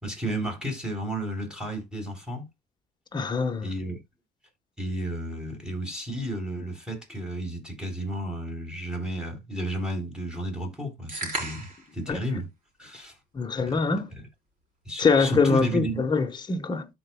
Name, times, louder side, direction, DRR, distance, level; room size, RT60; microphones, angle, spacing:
voice 1, 0.0-2.5 3.6-4.0 4.8-11.7 11.9-12.5 12.8-13.1 13.6-13.8 14.9-16.0, right 1 dB, 5° right, 3.8 m, -32 dB
voice 2, 3.1-3.7 12.1-12.2 13.3-14.1 15.0-16.9, left 4 dB, 25° left, 1.3 m, -24 dB
sound 1, 11.1-11.9, right 2 dB, 50° right, 3.6 m, -33 dB
13.0 x 4.6 x 2.3 m
cardioid pair, 110°, 17 cm